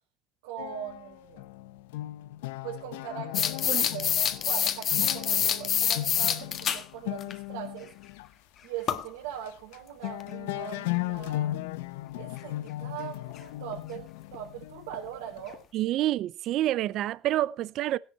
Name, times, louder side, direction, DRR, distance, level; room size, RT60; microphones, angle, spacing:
voice 1, 0.4-1.5 2.6-7.9 8.6-11.7 12.2-15.6, right 10 dB, 90° right, 4.8 m, -41 dB
sound 1, 0.6-8.3 8.9-9.0 9.3-9.8 10.0-15.6, left 16 dB, 90° left, 0.7 m, -37 dB
sound 2, 3.3-6.8 7.2-7.3 8.9-9.1 10.2-10.3 13.4-13.5 13.7-13.8 14.3-14.4 14.9-15.0 15.5-15.6, left 9 dB, 40° left, 1.4 m, -26 dB
voice 2, 15.7-18.0, right 14 dB, 50° right, 0.6 m, -28 dB
17.0 x 10.5 x 4.3 m
supercardioid pair, 125°, 0 cm